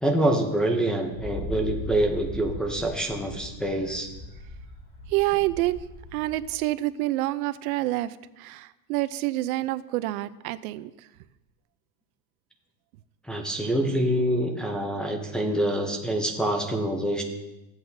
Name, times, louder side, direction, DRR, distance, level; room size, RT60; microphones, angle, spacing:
voice 1, 0.0-4.1 13.3-17.2, right 1 dB, ahead, 0 dB, 0.5 m, -26 dB
Wind, 1.1-6.6, left 1 dB, 30° left, 2.9 m, -39 dB
voice 2, 5.1-5.8 6.1-10.9, right 17 dB, 80° right, 15 dB, 0.6 m, -27 dB
14.5 x 7.9 x 2.7 m, 0.98 s
supercardioid pair, 165°, 43 cm